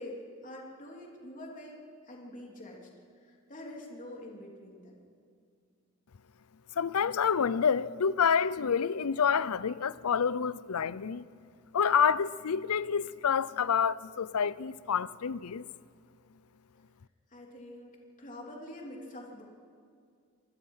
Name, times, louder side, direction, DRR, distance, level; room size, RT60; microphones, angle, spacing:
voice 1, 0.0-2.9 3.2-5.0 17.3-19.4, left 1 dB, 35° left, 3.3 m, -45 dB
voice 2, 6.8-11.2 11.7-15.6, left 7 dB, 85° left, 0.6 m, -28 dB
26.0 x 20.5 x 5.7 m
head